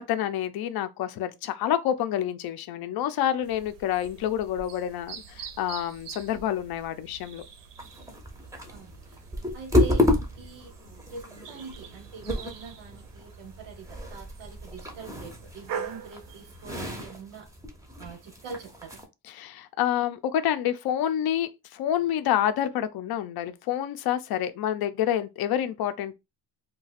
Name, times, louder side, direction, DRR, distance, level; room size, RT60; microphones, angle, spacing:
voice 1, 0.0-7.4 19.3-26.1, left 10 dB, 55° left, 0.5 m, -28 dB
sound 1, 3.4-16.7, right 7 dB, 70° right, 0.7 m, -44 dB
sound 2, 7.8-19.1, left 1 dB, 5° right, 0.5 m, -31 dB
voice 2, 8.7-9.3 9.5-10.0 10.3-10.7 11.1-17.5 18.0-19.0, right 5 dB, 90° right, 1.0 m, -44 dB
2.4 x 2.2 x 4.0 m
cardioid pair, 135°, 45 cm